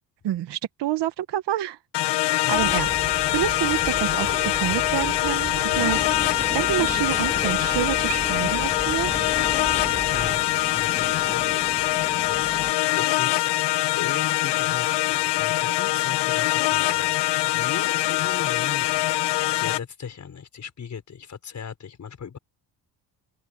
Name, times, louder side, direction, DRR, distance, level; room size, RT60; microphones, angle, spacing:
voice 1, 0.2-1.8 2.2-2.9 3.3-9.1, right 13 dB, 75° right, 1.3 m, -28 dB
sound 1, 1.9-19.8, left 16 dB, 70° left, 0.8 m, -23 dB
sound 2, 2.5-10.4, right 2 dB, 15° right, 2.9 m, -35 dB
sound 3, 5.7-12.7, left 2 dB, 15° left, 2.4 m, -37 dB
voice 2, 9.9-12.4 12.9-13.5 14.0-22.4, left 7 dB, 40° left, 5.0 m, -38 dB
cardioid pair, 135°, 42 cm